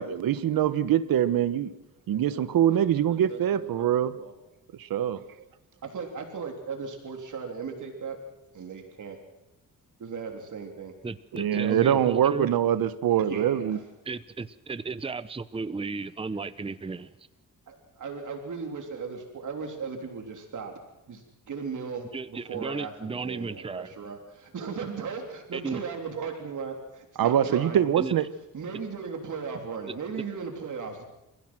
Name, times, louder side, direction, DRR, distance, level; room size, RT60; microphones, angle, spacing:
voice 1, 0.0-1.7 2.1-4.2 4.8-5.2 11.3-13.8 27.2-28.3, right 10 dB, 75° right, 14 dB, 1.2 m, -24 dB
voice 2, 2.1-2.4 2.7-4.3 5.8-8.2 8.5-9.2 10.0-10.9 11.7-12.1 13.2-13.8 17.7-20.7 21.1-27.9 28.5-31.0, right 5 dB, 60° right, 3 dB, 3.4 m, -37 dB
voice 3, 11.0-12.5 14.1-17.1 22.1-23.9 25.5-25.8 28.0-28.1, right 4 dB, 15° right, 14 dB, 0.8 m, -34 dB
29.0 x 15.5 x 6.1 m, 0.94 s
cardioid pair, 85°, 35 cm